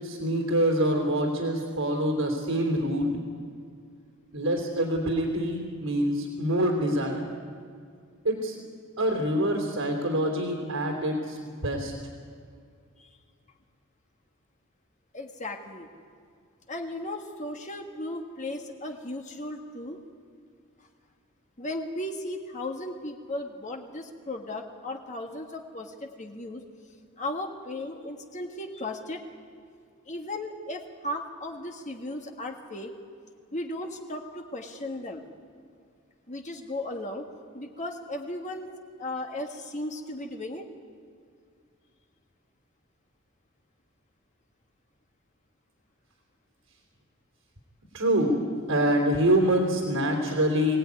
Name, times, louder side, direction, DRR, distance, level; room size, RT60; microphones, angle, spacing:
voice 1, 0.0-3.2 4.3-7.3 8.2-8.6 9.0-11.9 47.9-48.4 48.7-50.8, right 1 dB, 75° right, 0 dB, 3.3 m, -25 dB
voice 2, 15.1-15.9 16.7-20.0 21.6-26.6 27.2-29.2 30.1-32.9 33.5-35.2 36.3-37.3 37.5-38.7 39.0-40.6, left 1 dB, 35° left, 3 dB, 1.5 m, -36 dB
24.0 x 17.5 x 9.6 m, 2.2 s
head